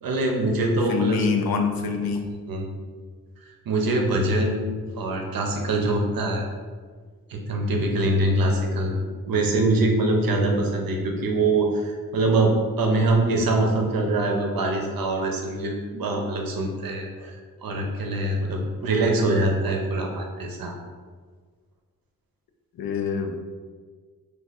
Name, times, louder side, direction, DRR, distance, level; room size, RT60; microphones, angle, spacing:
voice 1, 0.0-1.3 2.5-2.7 3.7-6.4 7.3-9.0 9.3-20.8, right 2 dB, 80° right, 1 dB, 0.6 m, -24 dB
voice 2, 0.9-2.3 22.8-23.4, left 5 dB, 90° left, 4 dB, 0.5 m, -25 dB
2.4 x 2.4 x 4.1 m, 1.6 s
wide cardioid pair, 90°, 35 cm